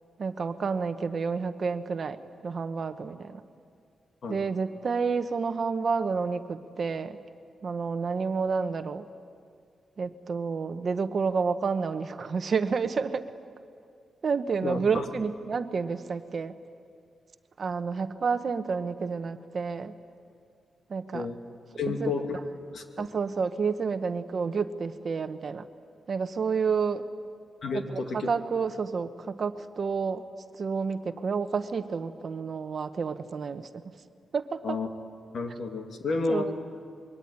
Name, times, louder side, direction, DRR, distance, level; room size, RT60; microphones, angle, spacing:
voice 1, 0.2-3.4 4.3-7.2 7.6-9.0 10.0-13.2 14.2-16.5 17.6-19.9 20.9-21.3 21.8-22.1 23.0-25.7 26.1-27.0 27.7-30.2 30.6-33.7 34.3-34.8 36.3-36.5, right 5 dB, 45° right, 10 dB, 1.0 m, -30 dB
voice 2, 14.6-15.0 21.1-21.4 21.8-22.4 22.7-23.1 27.6-28.3 34.6-34.9 35.3-36.5, left 3 dB, 60° left, 4 dB, 2.4 m, -31 dB
26.0 x 23.0 x 9.7 m, 2.3 s
wide cardioid pair, 160°, 0 cm